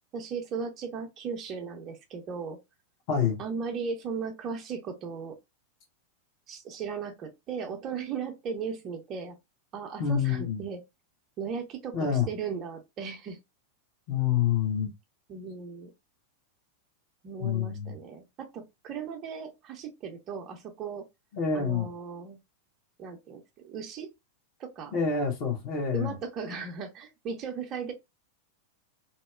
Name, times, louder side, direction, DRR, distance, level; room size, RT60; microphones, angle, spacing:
voice 1, 0.1-2.6 3.4-5.4 6.5-9.4 9.7-10.8 11.4-13.4 15.3-15.9 17.2-21.0 21.5-22.4 23.0-24.1 24.6-25.0 25.9-27.9, right 5 dB, 35° right, 0.5 m, -37 dB
voice 2, 3.1-3.4 10.0-10.6 11.9-12.3 14.1-14.9 17.4-17.9 21.3-21.9 24.9-26.2, left 7 dB, 40° left, 1.0 m, -27 dB
2.8 x 2.0 x 2.3 m
figure-of-eight pair, 90°, 0 cm